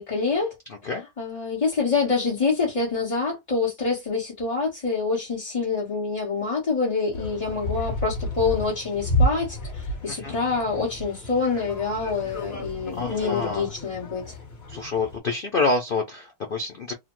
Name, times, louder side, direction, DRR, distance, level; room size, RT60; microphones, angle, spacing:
voice 1, 0.0-0.6 0.8-0.9 1.2-14.4, left 4 dB, 25° left, 0.9 m, -26 dB
voice 2, 0.7-1.0 10.1-10.4 12.9-13.7 14.7-16.9, left 3 dB, 90° left, 0.4 m, -27 dB
sound 1, 7.1-15.2, equal, 40° left, 1.5 m, -31 dB
3.0 x 2.1 x 3.0 m
omnidirectional pair, 1.9 m